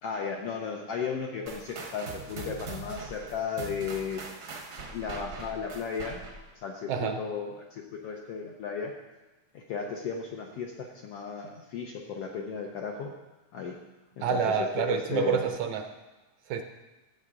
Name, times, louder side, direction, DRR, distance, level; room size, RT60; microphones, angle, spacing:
voice 1, 0.0-4.2 4.9-6.2 6.6-8.9 9.5-13.1 13.5-13.8 14.2-14.4 14.8-15.4, left 6 dB, 75° left, 0 dB, 1.4 m, -35 dB
sound 1, 1.5-6.5, right 3 dB, 60° right, 1.0 m, -42 dB
voice 2, 6.9-7.2 14.2-15.9 16.5-16.6, right 6 dB, 75° right, 7 dB, 1.8 m, -28 dB
14.5 x 7.9 x 3.7 m, 1.1 s
omnidirectional pair, 3.6 m